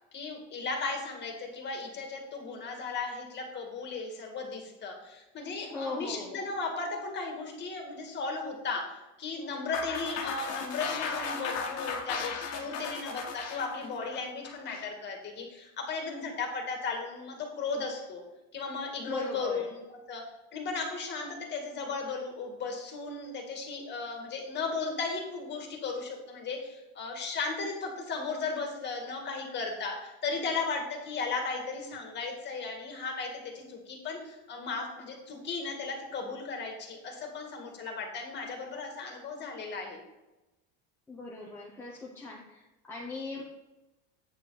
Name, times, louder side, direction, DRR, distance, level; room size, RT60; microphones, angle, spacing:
voice 1, 0.1-8.8 9.2-18.2 18.5-20.2 20.5-40.0, left 4 dB, 30° left, 2 dB, 2.0 m, -36 dB
voice 2, 5.7-6.4 19.0-19.7 41.1-43.4, left 2 dB, 5° left, -4 dB, 0.9 m, -39 dB
sound 1, 9.7-14.9, left 5 dB, 50° left, 1.6 m, -36 dB
8.8 x 7.1 x 4.1 m, 1.0 s
cardioid pair, 160°, 33 cm